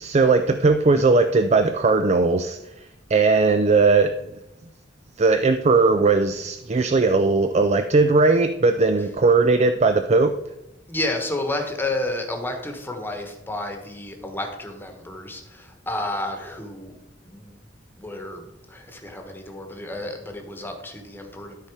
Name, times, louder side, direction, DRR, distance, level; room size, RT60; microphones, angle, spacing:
voice 1, 0.0-4.1 5.2-10.3, right 3 dB, 35° right, 9 dB, 0.4 m, -18 dB
voice 2, 10.9-16.9 17.2-17.6 18.0-21.6, left 2 dB, 10° left, 3 dB, 1.2 m, -31 dB
13.0 x 4.3 x 4.8 m, 0.89 s
head